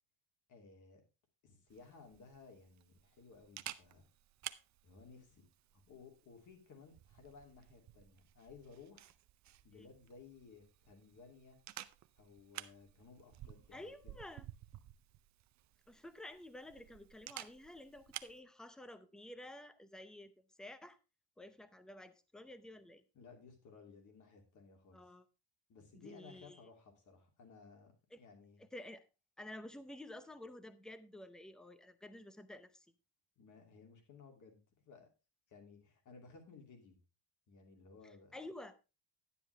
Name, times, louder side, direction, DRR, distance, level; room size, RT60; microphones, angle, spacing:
voice 1, 0.5-1.0 1.4-4.1 4.8-5.5 5.7-9.1 9.6-11.6 12.2-14.2 23.1-25.1 25.7-27.9 28.2-28.6 33.4-35.1 35.5-37.0 37.5-38.3, left 4 dB, 45° left, 2.7 m, -58 dB
Camera, 1.7-18.4, right 13 dB, 40° right, 0.5 m, -54 dB
voice 2, 13.7-14.4 15.9-20.3 20.6-21.0 21.4-23.0 24.9-25.2 25.9-26.6 28.1-28.2 28.6-29.0 29.4-32.9 38.0-38.7, left 1 dB, ahead, 0.6 m, -51 dB
11.0 x 9.9 x 3.3 m
cardioid pair, 170°, 43 cm